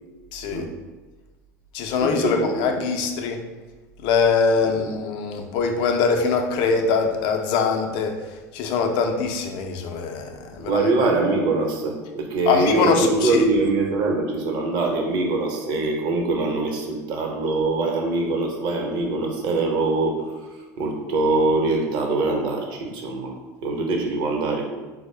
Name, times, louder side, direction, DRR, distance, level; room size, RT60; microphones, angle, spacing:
voice 1, 0.3-0.6 1.7-3.4 4.0-8.1 8.5-10.8 12.5-13.4, left 5 dB, 60° left, 4 dB, 0.5 m, -23 dB
voice 2, 2.0-2.8 4.6-4.9 10.6-20.3 20.8-23.3 23.6-24.6, right 2 dB, 55° right, 1 dB, 0.9 m, -23 dB
4.1 x 2.1 x 3.2 m, 1.2 s
hypercardioid pair, 95°, 10 cm